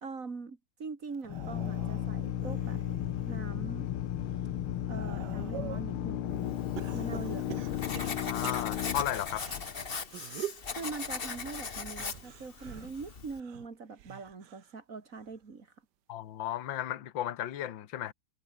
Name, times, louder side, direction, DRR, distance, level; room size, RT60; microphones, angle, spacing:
voice 1, 0.0-2.8 3.3-3.9 4.9-6.7 6.9-7.9 10.7-15.7, right 4 dB, 40° right, 2.7 m, -42 dB
sound 1, 1.1-3.4 3.9-5.9 6.8-9.5 10.0-10.7 11.9-14.8 15.1-15.5 16.7-16.8, right 12 dB, 65° right, 1.3 m, -45 dB
Drill, 1.2-9.9, left 12 dB, 85° left, 1.9 m, -34 dB
Writing, 6.7-13.4, left 5 dB, 30° left, 1.3 m, -39 dB
voice 2, 8.3-9.4 16.1-18.1, left 12 dB, 65° left, 1.9 m, -34 dB
omnidirectional pair, 2.4 m